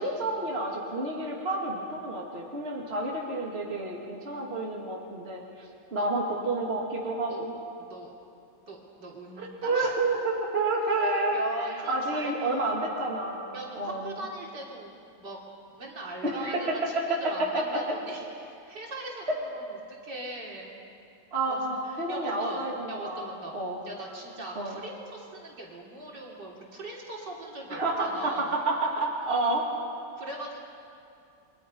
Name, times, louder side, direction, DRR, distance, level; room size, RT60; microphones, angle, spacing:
voice 1, 0.0-7.5 9.4-14.1 16.2-16.6 17.0-17.8 21.3-23.8 24.6-24.8 27.7-29.7, right 2 dB, 30° right, -2 dB, 2.8 m, -30 dB
voice 2, 7.8-8.1 8.7-10.0 11.3-12.9 13.5-15.4 15.7-20.8 21.5-22.6 22.9-23.5 23.8-28.6 30.2-30.6, right 2 dB, 60° right, -2 dB, 3.7 m, -40 dB
28.5 x 24.0 x 5.4 m, 2.5 s
omnidirectional pair, 2.1 m